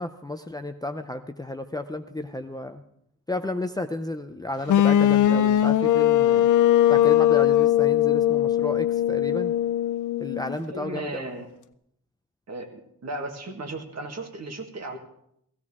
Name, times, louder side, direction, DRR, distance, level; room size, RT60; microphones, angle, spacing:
voice 1, 0.0-2.8 3.3-6.5 6.9-9.5 10.2-11.3, left 2 dB, 10° left, 7 dB, 0.5 m, -32 dB
sound 1, 4.7-10.6, left 12 dB, 70° left, 0.5 m, -20 dB
voice 2, 10.7-11.5 12.5-15.0, right 2 dB, 55° right, 4 dB, 1.7 m, -35 dB
16.0 x 16.0 x 3.6 m, 0.73 s
wide cardioid pair, 160°, 32 cm